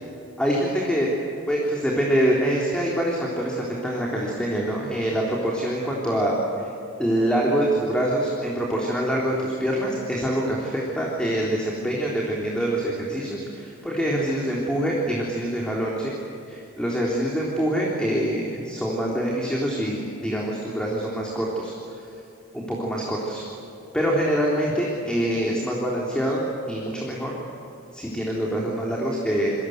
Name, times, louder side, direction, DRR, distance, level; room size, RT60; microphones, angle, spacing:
voice 1, 0.4-1.1 1.5-6.7 7.0-16.1 16.5-21.7 22.5-23.4 23.9-27.3 27.9-29.5, right 1 dB, 5° left, -3 dB, 3.5 m, -25 dB
29.0 x 24.5 x 8.0 m, 2.8 s
head